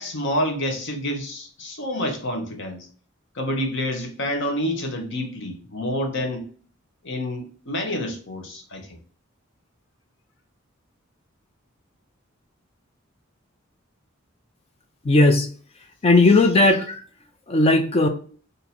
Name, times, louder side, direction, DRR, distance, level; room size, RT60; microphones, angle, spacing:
voice 1, 0.0-2.9 3.3-6.4 7.0-9.0, left 1 dB, 60° left, 0.9 m, -28 dB
voice 2, 15.0-15.5 16.0-17.0 17.5-18.1, left 2 dB, 30° left, 0.4 m, -16 dB
2.8 x 2.6 x 4.1 m
head